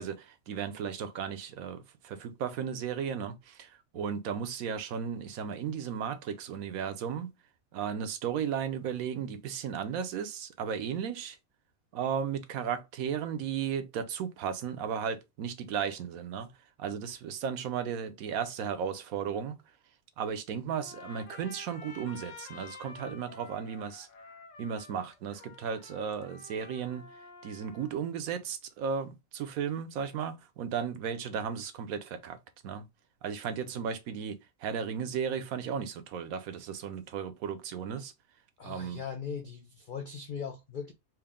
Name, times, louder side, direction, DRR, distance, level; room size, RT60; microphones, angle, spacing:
voice 1, 0.0-7.3 7.7-11.4 11.9-16.5 16.8-19.5 20.2-24.1 24.6-27.0 27.4-32.4 32.6-32.8 33.2-38.1 38.6-39.0, right 7 dB, 80° right, 1.1 m, -35 dB
Trumpet, 20.7-28.0, left 4 dB, 65° left, 1.0 m, -50 dB
voice 2, 38.6-40.9, left 6 dB, 85° left, 0.4 m, -39 dB
4.5 x 2.0 x 3.5 m
omnidirectional pair, 1.5 m